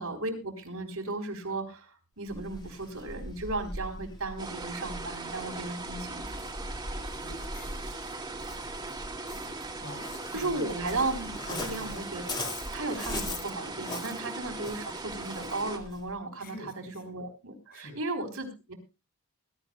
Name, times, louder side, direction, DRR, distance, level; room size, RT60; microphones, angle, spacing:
voice 1, 0.0-6.2 10.3-18.7, right 2 dB, 75° right, 3 dB, 3.9 m, -35 dB
Waves surf, 2.3-16.1, left 1 dB, 20° left, 2.2 m, -41 dB
sound 1, 4.4-15.8, right 3 dB, 20° right, 2.3 m, -39 dB
voice 2, 7.2-7.9 9.8-10.8 11.5-11.9 16.4-17.0 17.7-18.0, left 1 dB, 50° left, 4 dB, 6.0 m, -46 dB
21.0 x 12.5 x 2.3 m, 0.28 s
head